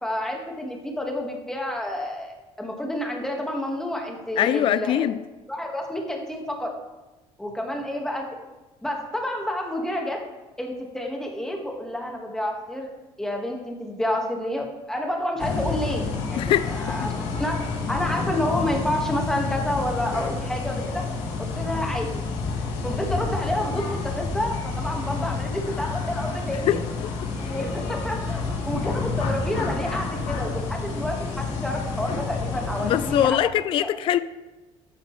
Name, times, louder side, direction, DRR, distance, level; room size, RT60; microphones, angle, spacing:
voice 1, 0.0-5.1 5.5-6.7 7.4-8.3 8.8-10.2 10.6-12.9 13.2-17.1 17.3-17.6 17.9-21.0 21.5-22.1 22.8-26.8 27.4-33.4 33.8-34.0, left 1 dB, 5° left, 1.7 m, -29 dB
voice 2, 4.4-5.2 16.4-16.7 26.7-26.8 32.8-34.2, left 11 dB, 50° left, 0.4 m, -22 dB
sound 1, 15.4-33.3, left 4 dB, 90° left, 2.1 m, -29 dB
12.0 x 9.2 x 3.2 m
cardioid pair, 145°, 11 cm